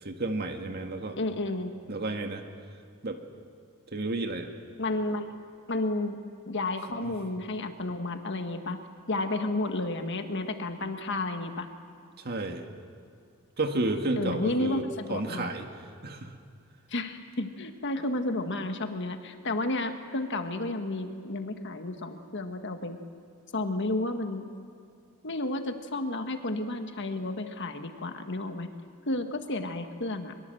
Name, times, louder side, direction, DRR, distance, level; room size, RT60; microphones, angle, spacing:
voice 1, 0.0-1.2 1.9-2.4 3.0-3.2 3.9-4.5 7.0-7.1 12.2-12.7 13.6-14.8 15.1-15.7 16.0-16.3, right 2 dB, 45° right, 5 dB, 1.9 m, -31 dB
voice 2, 1.2-1.7 4.8-5.3 5.7-6.2 6.5-8.8 9.1-11.7 14.2-15.5 16.9-23.0 23.5-24.4 25.2-28.7 29.1-30.3, left 2 dB, 55° left, 6 dB, 1.6 m, -31 dB
23.5 x 23.0 x 7.8 m, 2.3 s
head